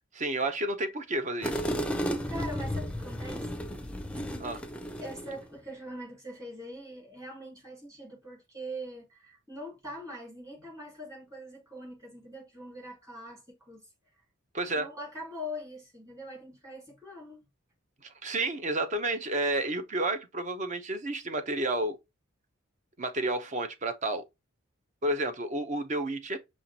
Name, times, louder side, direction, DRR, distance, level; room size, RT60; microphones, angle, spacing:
voice 1, 0.1-1.6 4.4-4.6 14.5-14.9 18.0-22.0 23.0-24.2 25.0-26.4, right 2 dB, 35° right, 0.7 m, -31 dB
sound 1, 1.4-5.5, equal, 5° left, 0.5 m, -33 dB
voice 2, 1.9-3.6 4.2-4.3 5.0-13.9 14.8-17.4, equal, 15° right, 2.1 m, -43 dB
5.6 x 3.1 x 2.8 m
head